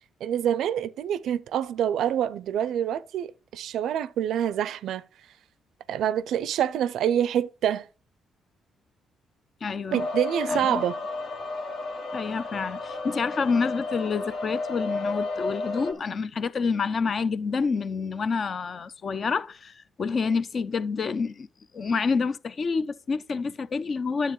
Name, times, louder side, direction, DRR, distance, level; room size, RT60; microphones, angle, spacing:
voice 1, 0.2-5.0 5.9-7.9 9.9-11.0, right 10 dB, 75° right, 0.4 m, -26 dB
voice 2, 9.6-10.0 10.5-10.8 12.1-21.5 21.7-24.3, left 5 dB, 45° left, 0.5 m, -28 dB
sound 1, 9.9-15.9, left 3 dB, 65° left, 1.7 m, -32 dB
10.0 x 7.4 x 3.1 m
cardioid pair, 90°, 0 cm